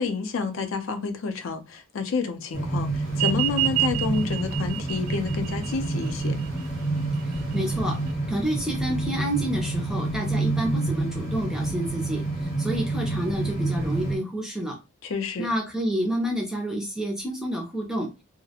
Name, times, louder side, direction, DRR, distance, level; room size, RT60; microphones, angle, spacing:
voice 1, 0.0-6.4 15.0-15.5, left 4 dB, 75° left, 0.4 m, -29 dB
sound 1, 2.5-14.2, right 2 dB, 35° left, 0.7 m, -28 dB
sound 2, 3.1-8.1, right 16 dB, 85° right, 0.4 m, -30 dB
voice 2, 7.3-8.0 8.3-14.8 15.4-18.1, right 1 dB, 5° right, 0.3 m, -29 dB
2.3 x 2.0 x 2.7 m
head